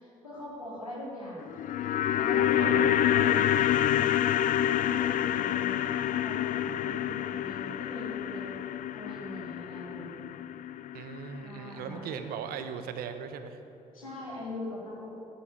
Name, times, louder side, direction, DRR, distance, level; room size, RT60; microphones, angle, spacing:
voice 1, 0.0-1.5 2.1-3.4 3.8-4.3 4.7-8.6 8.9-10.1 11.4-12.0 13.9-15.2, left 1 dB, 85° left, -8 dB, 4.2 m, -41 dB
sound 1, 1.4-11.7 11.9-12.0, left 11 dB, 50° left, 0.5 m, -28 dB
voice 2, 2.5-3.3 10.9-13.6, right 7 dB, 60° right, 9 dB, 1.1 m, -39 dB
14.0 x 10.0 x 9.2 m, 2.8 s
figure-of-eight pair, 40°, 17 cm